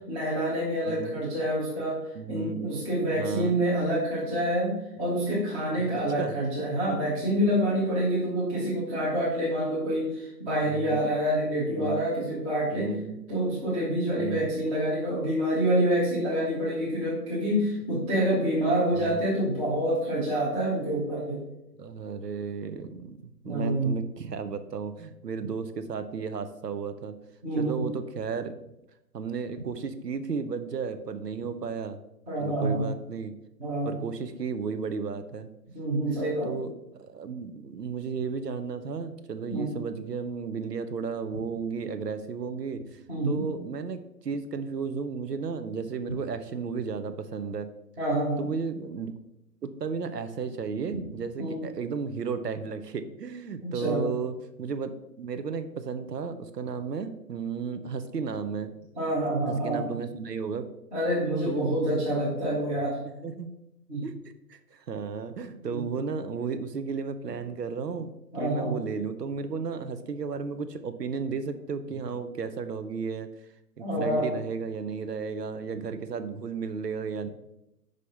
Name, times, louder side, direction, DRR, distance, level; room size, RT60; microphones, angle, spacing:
voice 1, 0.1-2.0 2.3-4.7 5.0-12.9 13.3-21.4 23.4-23.9 27.4-27.8 32.3-32.8 33.6-33.9 35.7-36.5 39.5-39.7 43.1-43.4 48.0-48.4 51.4-51.6 53.6-54.1 59.0-59.8 60.9-63.0 63.9-64.0 65.6-65.8 68.3-68.7 73.8-74.3, right 1 dB, 5° right, -7 dB, 0.7 m, -27 dB
voice 2, 2.1-2.7 3.1-3.6 5.8-5.9 6.2-6.3 6.9-7.0 10.6-11.0 11.7-12.1 12.7-13.2 14.2-14.5 18.9-19.2 21.8-23.2 23.4-27.1 27.6-28.6 29.1-32.0 32.4-33.4 33.9-35.5 36.5-36.7 37.0-47.7 48.4-49.1 49.6-54.9 55.2-58.7 59.5-60.7 61.4-61.7 63.0-63.5 64.0-64.1 64.5-73.3 73.8-77.3, right 5 dB, 75° right, 10 dB, 0.7 m, -34 dB
5.3 x 4.9 x 4.1 m, 0.86 s
figure-of-eight pair, 140°, 49 cm